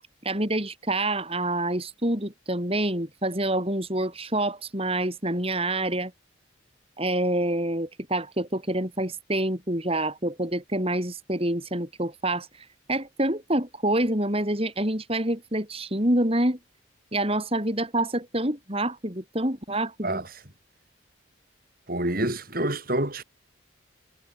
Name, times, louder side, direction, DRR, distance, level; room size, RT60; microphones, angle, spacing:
voice 1, 0.2-6.1 7.0-16.6 17.1-20.2, right 1 dB, 30° right, 6.8 m, -27 dB
voice 2, 21.9-23.2, right 1 dB, 50° right, 5.8 m, -27 dB
head